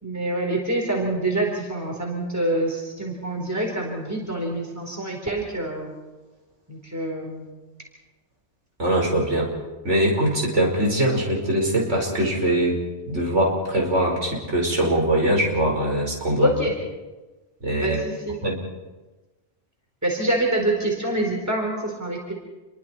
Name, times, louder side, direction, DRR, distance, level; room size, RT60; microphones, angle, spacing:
voice 1, 0.0-5.9 6.7-7.5 16.4-16.7 17.8-18.4 20.0-22.3, right 1 dB, 15° right, 0 dB, 4.2 m, -26 dB
voice 2, 8.8-9.5 9.8-12.8 13.1-16.5 17.6-18.0 18.4-18.5, right 1 dB, 90° right, -1 dB, 5.5 m, -22 dB
28.0 x 23.0 x 4.5 m, 1.2 s
omnidirectional pair, 1.2 m